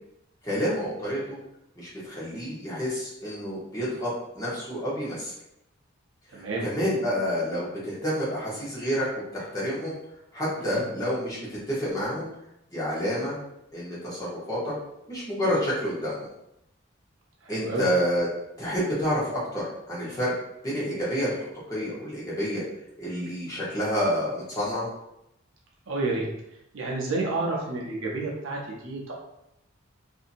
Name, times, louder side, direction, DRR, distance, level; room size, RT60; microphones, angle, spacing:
voice 1, 0.4-1.4 1.7-5.3 6.3-9.1 9.3-9.9 10.3-12.3 12.7-13.4 13.7-14.7 15.1-16.2 17.5-18.3 18.6-20.3 20.6-22.6 23.0-24.9, equal, 15° left, -8 dB, 1.0 m, -29 dB
voice 2, 6.3-6.7 10.6-10.8 17.4-17.9 25.9-26.3 26.7-29.1, right 3 dB, 75° right, -2 dB, 0.7 m, -30 dB
2.7 x 2.7 x 2.6 m, 0.83 s
head